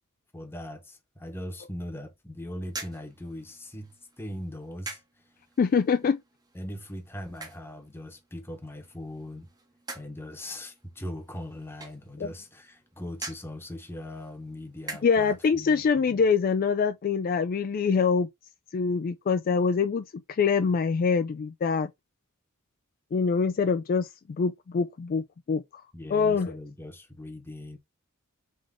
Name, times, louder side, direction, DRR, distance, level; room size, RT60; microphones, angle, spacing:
voice 1, 0.3-5.0 6.5-9.5 9.9-16.2 25.9-27.8, left 1 dB, 10° left, 1.0 m, -40 dB
sound 1, 2.6-15.4, right 3 dB, 20° right, 0.8 m, -46 dB
voice 2, 5.6-6.2 12.2-12.3 15.0-18.3 18.7-21.9 23.1-25.6 26.1-26.5, left 5 dB, 40° left, 0.3 m, -24 dB
3.8 x 3.5 x 3.6 m
head